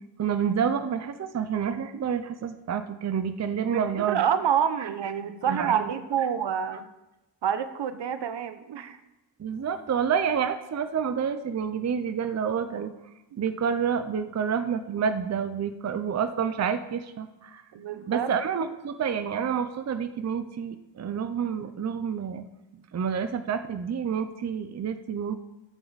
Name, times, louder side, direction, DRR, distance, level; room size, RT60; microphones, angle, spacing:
voice 1, 0.2-4.2 5.5-5.9 9.4-12.9 13.4-17.6 18.1-22.5 22.9-25.4, right 7 dB, 40° right, 10 dB, 0.6 m, -28 dB
voice 2, 3.7-6.9 7.4-9.0 17.7-18.3 22.7-22.8, right 8 dB, 70° right, 11 dB, 0.9 m, -28 dB
14.5 x 9.0 x 4.1 m, 0.99 s
wide cardioid pair, 140°, 44 cm